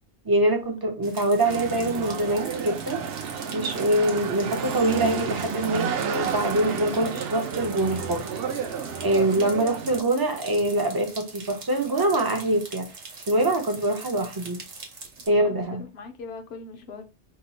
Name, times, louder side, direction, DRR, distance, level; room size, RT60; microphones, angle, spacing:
voice 1, 0.3-3.0 3.5-8.2 9.0-12.9 13.3-14.6 15.3-15.8, right 1 dB, 30° right, 0.4 m, -24 dB
sound 1, 1.0-15.3, right 4 dB, 90° right, 1.1 m, -43 dB
sound 2, 1.4-10.0, right 7 dB, 65° right, 0.7 m, -31 dB
voice 2, 15.3-17.0, left 4 dB, 70° left, 0.9 m, -41 dB
2.8 x 2.3 x 4.0 m
omnidirectional pair, 1.2 m